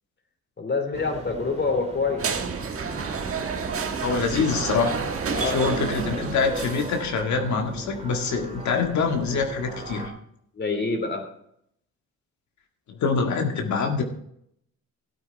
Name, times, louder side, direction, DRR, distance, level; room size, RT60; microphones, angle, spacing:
voice 1, 0.6-2.3 5.3-5.7 10.5-11.2, left 4 dB, 35° left, 4 dB, 3.1 m, -26 dB
sound 1, 0.9-10.1, right 2 dB, 20° right, 2.4 m, -38 dB
sound 2, 2.2-7.2, right 6 dB, 45° right, 1.5 m, -30 dB
voice 2, 4.0-5.0 5.4-10.1 13.0-14.0, left 5 dB, 70° left, 3 dB, 1.8 m, -25 dB
12.5 x 8.6 x 4.5 m, 0.70 s
cardioid pair, 90°, 30 cm